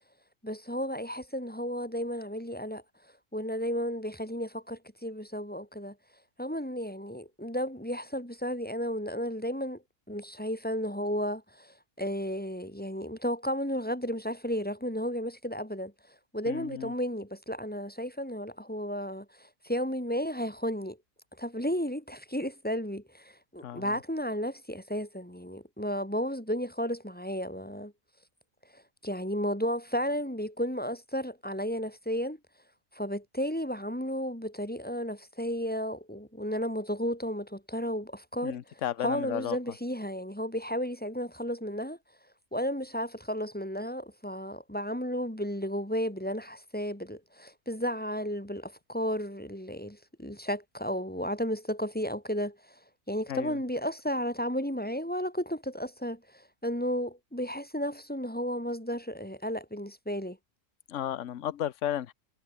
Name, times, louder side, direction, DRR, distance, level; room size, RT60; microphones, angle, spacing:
voice 1, 0.4-2.8 3.3-5.9 6.4-9.8 10.1-15.9 16.3-21.0 21.4-27.9 28.7-32.4 32.9-38.6 39.0-42.0 42.5-52.8 53.1-60.4, equal, 5° left, 4.1 m, -33 dB
voice 2, 16.5-16.9 23.6-24.0 38.4-39.6 53.3-53.6 60.9-62.1, left 11 dB, 70° left, 1.2 m, -34 dB
omnidirectional pair, 1.4 m